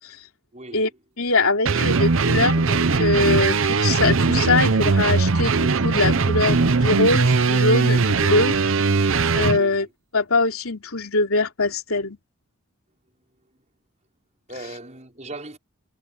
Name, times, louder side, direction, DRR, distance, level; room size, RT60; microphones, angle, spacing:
voice 1, 0.5-0.9 9.5-9.9 14.5-15.6, right 2 dB, 30° right, 5.6 m, -38 dB
voice 2, 1.2-8.5 9.3-9.9 10.1-12.2, left 3 dB, 75° left, 3.3 m, -22 dB
sound 1, 1.7-9.6, right 4 dB, 60° right, 0.8 m, -20 dB
head